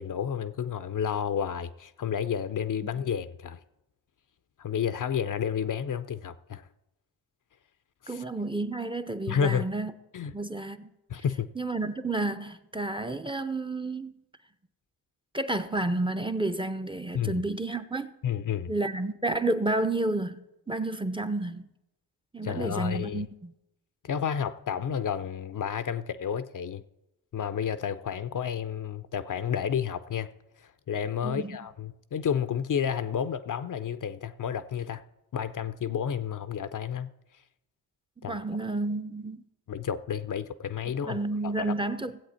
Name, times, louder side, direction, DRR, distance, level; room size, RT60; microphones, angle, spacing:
voice 1, 0.0-3.6 4.6-6.6 8.0-8.2 9.3-9.7 10.1-10.3 11.1-11.5 17.1-17.4 18.2-18.7 22.4-23.2 24.0-26.8 27.3-30.3 30.6-35.0 35.3-37.1 38.2-38.4 39.7-41.2 41.4-41.7, left 8 dB, 45° left, 0.6 m, -31 dB
voice 2, 8.1-9.9 10.3-10.9 11.6-14.1 15.3-18.1 18.7-21.7 22.3-23.5 31.2-31.6 38.2-39.4 41.1-42.2, right 2 dB, 10° right, 0.6 m, -30 dB
16.0 x 7.9 x 4.3 m
hypercardioid pair, 45°, 46 cm